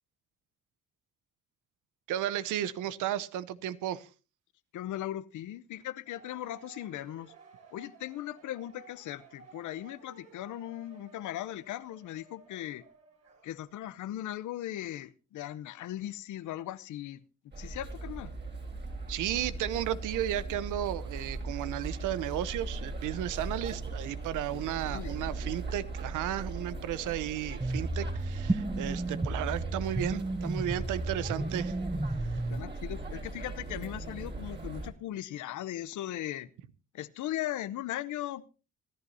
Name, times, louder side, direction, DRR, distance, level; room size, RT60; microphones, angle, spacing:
voice 1, 2.1-4.1 19.1-31.7, right 12 dB, 90° right, 16 dB, 0.9 m, -34 dB
voice 2, 4.7-7.3 7.7-12.8 13.4-17.2 17.6-18.3 24.5-25.2 32.5-36.5 36.9-38.5, left 13 dB, 80° left, 17 dB, 0.9 m, -38 dB
sound 1, 6.0-13.7, right 4 dB, 55° right, 5.1 m, -56 dB
sound 2, 17.5-34.9, right 3 dB, 35° right, 3.8 m, -39 dB
sound 3, 27.6-32.6, right 2 dB, 10° right, 0.6 m, -33 dB
26.0 x 11.0 x 2.8 m, 0.32 s
cardioid pair, 90°, 30 cm